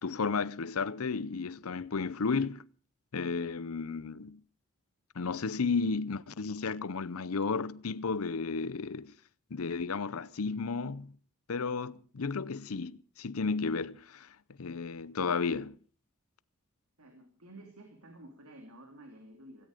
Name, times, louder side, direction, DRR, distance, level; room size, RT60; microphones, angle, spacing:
voice 1, 0.0-2.6 3.1-4.4 5.2-9.1 9.5-11.1 11.5-14.3 14.6-15.8, left 4 dB, 80° left, 0.7 m, -33 dB
voice 2, 17.0-19.7, right 1 dB, 85° right, 3.0 m, -52 dB
17.0 x 16.5 x 5.1 m
head